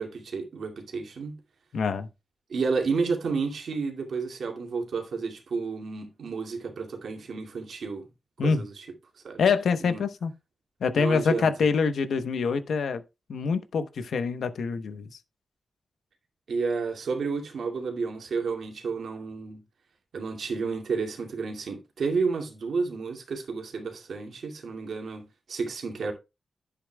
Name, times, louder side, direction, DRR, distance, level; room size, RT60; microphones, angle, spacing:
voice 1, 0.0-1.4 2.5-8.1 8.4-8.9 9.2-9.4 9.8-10.0 10.9-11.5 16.5-19.6 20.1-26.1, right 4 dB, 75° right, 2.3 m, -31 dB
voice 2, 1.7-2.1 8.4-8.6 9.4-10.3 10.8-13.0 13.3-15.1, left 5 dB, 90° left, 1.0 m, -25 dB
11.0 x 8.5 x 2.3 m
wide cardioid pair, 155°, 0 cm